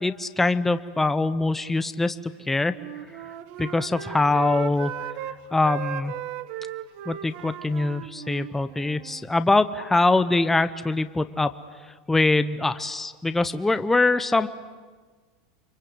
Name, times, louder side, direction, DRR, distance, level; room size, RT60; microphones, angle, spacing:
voice 1, 0.0-2.7 3.6-5.1 5.5-6.1 7.1-11.5 12.1-14.5, left 2 dB, 5° left, 11 dB, 0.8 m, -23 dB
Wind instrument woodwind instrument, 2.6-5.4 5.6-9.3, right 11 dB, 50° right, 1.3 m, -37 dB
29.0 x 24.0 x 8.0 m, 1.4 s
supercardioid pair, 145°, 4 cm